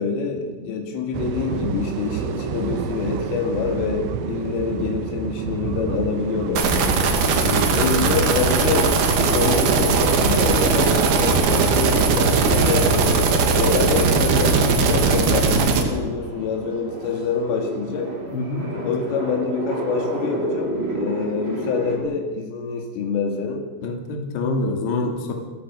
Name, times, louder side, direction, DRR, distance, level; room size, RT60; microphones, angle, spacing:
voice 1, 0.0-7.1 7.7-13.1 13.5-18.1 18.8-23.7, left 5 dB, 80° left, 3 dB, 4.8 m, -26 dB
sound 1, 1.1-14.6, right 8 dB, 80° right, 3.2 m, -29 dB
sound 2, 6.6-15.8, right 4 dB, 55° right, 3.5 m, -19 dB
voice 2, 7.4-7.7 18.3-18.9 23.8-25.3, left 2 dB, 60° left, 3 dB, 4.4 m, -26 dB
sound 3, 8.2-22.0, right 2 dB, 25° right, 3.5 m, -31 dB
29.5 x 15.0 x 6.2 m, 1.3 s
omnidirectional pair, 5.7 m